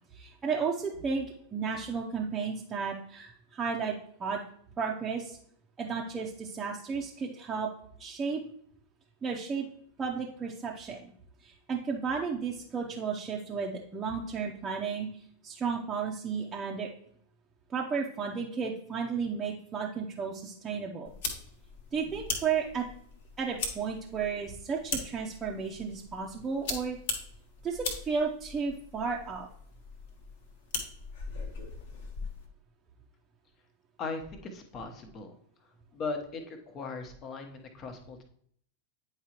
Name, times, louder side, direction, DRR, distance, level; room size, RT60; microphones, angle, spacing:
voice 1, 0.1-4.4 4.8-5.4 5.8-7.7 8.0-8.4 9.2-9.7 10.0-11.1 11.4-16.9 17.7-21.1 21.9-22.9 23.4-27.0 27.6-29.5, right 5 dB, 20° right, -3 dB, 0.8 m, -33 dB
sound 1, 21.0-32.5, left 4 dB, 55° left, 1.3 m, -40 dB
voice 2, 34.0-35.4 35.9-38.2, left 4 dB, 30° left, 5 dB, 1.2 m, -38 dB
9.4 x 4.8 x 3.0 m, 0.64 s
figure-of-eight pair, 90°, 0 cm